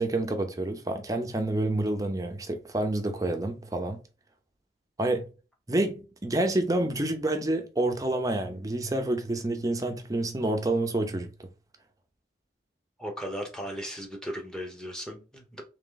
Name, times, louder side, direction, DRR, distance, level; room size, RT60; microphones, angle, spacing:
voice 1, 0.0-4.0 5.0-5.3 5.7-11.5, right 1 dB, 20° right, 0.6 m, -28 dB
voice 2, 13.0-15.6, equal, 5° left, 0.9 m, -37 dB
3.8 x 3.2 x 3.8 m
head